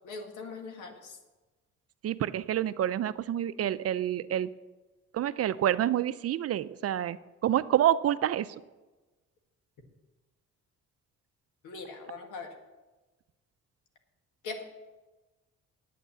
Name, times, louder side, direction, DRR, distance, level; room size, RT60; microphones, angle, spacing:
voice 1, 0.0-1.2 11.6-12.6 14.4-14.6, left 4 dB, 90° left, 3 dB, 1.8 m, -41 dB
voice 2, 2.0-4.5 5.1-7.2 7.4-8.5, right 11 dB, 50° right, 14 dB, 0.5 m, -28 dB
9.3 x 9.0 x 7.0 m, 1.2 s
cardioid pair, 90°, 30 cm